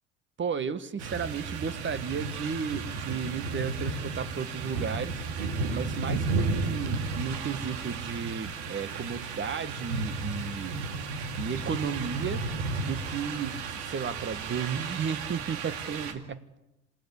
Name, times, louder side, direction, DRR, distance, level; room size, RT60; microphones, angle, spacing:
voice 1, 0.4-5.2 5.7-10.8 11.4-12.4 12.8-16.5, right 6 dB, 35° right, 13 dB, 1.7 m, -34 dB
sound 1, 1.0-16.1, right 3 dB, 75° right, 2.4 m, -33 dB
27.5 x 18.0 x 8.4 m, 0.93 s
hypercardioid pair, 65°, 33 cm